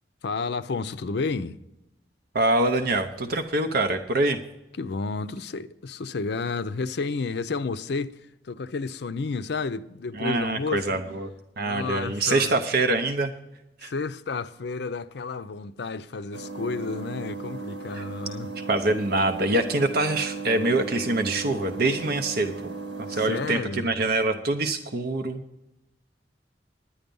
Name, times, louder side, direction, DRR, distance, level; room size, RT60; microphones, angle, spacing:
voice 1, 0.2-1.6 4.8-8.2 8.4-11.0 11.6-12.6 13.8-18.5 23.1-23.9, left 4 dB, 65° left, 0.5 m, -31 dB
voice 2, 2.3-4.4 10.1-11.3 11.6-13.3 13.8-13.9 18.0-18.1 18.7-25.4, right 2 dB, 60° right, 0.8 m, -25 dB
sound 1, 16.3-23.6, right 4 dB, 85° right, 1.4 m, -36 dB
10.5 x 10.0 x 5.3 m
head